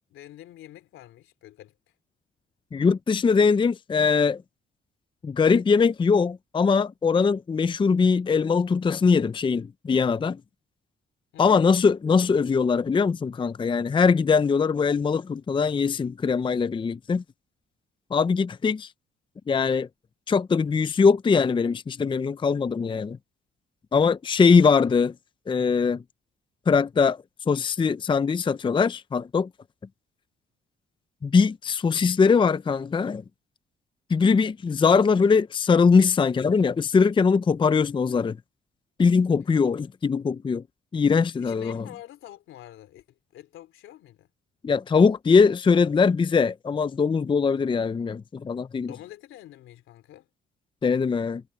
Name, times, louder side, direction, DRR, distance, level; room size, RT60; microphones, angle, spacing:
voice 1, 0.1-1.9 11.3-11.7 41.4-44.3 48.8-50.3, left 13 dB, 85° left, 3.4 m, -46 dB
voice 2, 2.7-4.4 5.2-10.4 11.4-17.2 18.1-18.9 19.5-19.9 20.3-23.2 23.9-25.1 25.5-26.0 26.7-27.2 27.5-29.5 31.2-33.2 34.1-38.4 39.0-40.6 40.9-41.8 44.6-48.9 50.8-51.4, left 5 dB, 25° left, 0.5 m, -21 dB
cardioid pair, 90°, 20 cm